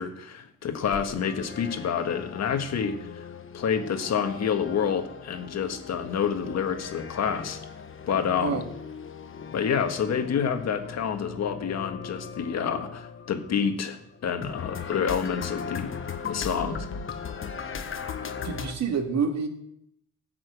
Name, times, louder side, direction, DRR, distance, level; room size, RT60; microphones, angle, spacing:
voice 1, 0.0-3.3 3.5-7.6 8.1-8.7 9.5-15.9 16.3-16.9, left 7 dB, 60° left, 6 dB, 1.7 m, -28 dB
sound 1, 0.8-18.7, left 6 dB, 45° left, 1.2 m, -38 dB
voice 2, 18.4-19.5, right 5 dB, 60° right, 4 dB, 2.2 m, -27 dB
11.0 x 6.2 x 8.1 m, 0.75 s
cardioid pair, 90°, 30 cm